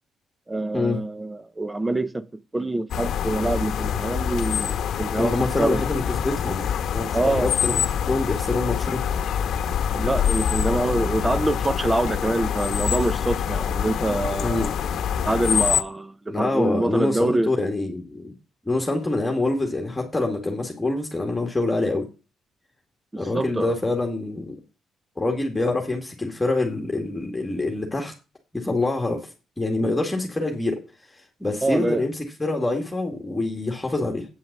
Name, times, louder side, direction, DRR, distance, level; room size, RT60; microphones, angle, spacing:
voice 1, 0.5-2.3 2.5-5.3 5.6-5.8 7.1-7.5 9.9-14.7 15.2-17.5 23.1-23.7 31.6-32.0, right 2 dB, 15° right, 0.8 m, -25 dB
sound 1, 2.9-15.8, left 8 dB, 70° left, 0.9 m, -25 dB
voice 2, 5.2-6.6 6.9-9.0 14.4-14.7 16.3-18.3 18.7-22.1 23.2-24.6 25.2-28.1 28.5-29.3 29.6-30.8 31.4-34.3, left 2 dB, 15° left, 2.1 m, -25 dB
8.9 x 5.7 x 6.8 m
cardioid pair, 90°, 0 cm